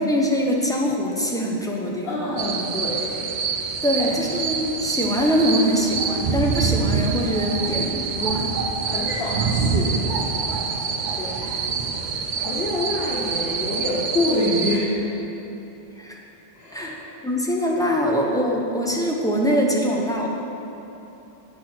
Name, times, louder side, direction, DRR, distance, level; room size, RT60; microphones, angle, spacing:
voice 1, 0.0-2.4 3.8-8.5 16.0-16.2 16.7-17.0 17.2-20.3, equal, 5° left, -2 dB, 0.6 m, -23 dB
voice 2, 2.0-4.2 8.8-15.1 16.5-16.9, left 1 dB, 70° left, -7 dB, 1.3 m, -28 dB
sound 1, 2.4-14.8, right 5 dB, 55° right, 0.6 m, -26 dB
8.2 x 6.1 x 4.3 m, 3.0 s
omnidirectional pair, 1.0 m